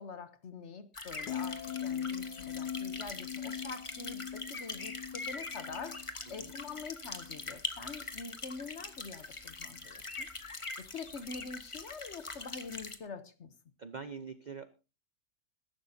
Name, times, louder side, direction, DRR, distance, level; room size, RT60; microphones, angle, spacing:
voice 1, 0.0-10.3 10.8-13.5, left 4 dB, 50° left, 1.1 m, -45 dB
sound 1, 0.9-13.0, left 3 dB, 20° left, 0.9 m, -43 dB
sound 2, 1.3-7.5 7.9-8.2, left 8 dB, 85° left, 1.8 m, -41 dB
voice 2, 13.8-14.7, right 5 dB, 75° right, 0.4 m, -45 dB
21.5 x 11.5 x 2.7 m
omnidirectional pair, 1.8 m